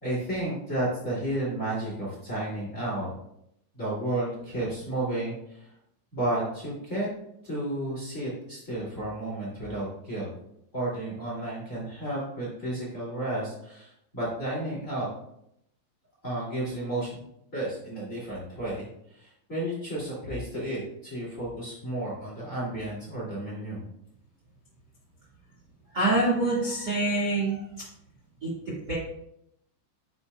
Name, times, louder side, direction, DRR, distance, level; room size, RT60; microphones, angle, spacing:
voice 1, 0.0-3.1 3.7-5.7 6.1-7.1 7.4-10.3 10.7-15.1 16.2-17.1 17.5-23.8, right 1 dB, 30° left, -6 dB, 1.6 m, -32 dB
voice 2, 25.9-27.7 28.4-28.9, right 2 dB, 75° right, -6 dB, 0.9 m, -26 dB
9.5 x 6.8 x 2.3 m, 0.77 s
omnidirectional pair, 5.4 m